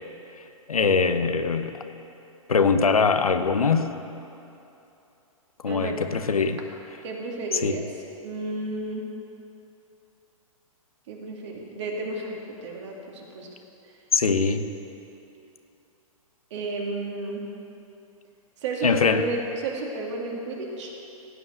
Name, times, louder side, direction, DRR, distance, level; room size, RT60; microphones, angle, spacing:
voice 1, 0.7-1.8 2.5-3.9 5.6-6.6 7.6-7.8 14.1-14.6 18.8-19.3, left 5 dB, 90° left, 9 dB, 0.8 m, -22 dB
voice 2, 5.7-6.0 7.0-7.8 8.2-9.1 11.1-13.5 16.5-17.5 18.6-20.9, right 2 dB, 55° right, -1 dB, 2.4 m, -32 dB
16.0 x 5.5 x 8.0 m, 2.9 s
hypercardioid pair, 120°, 18 cm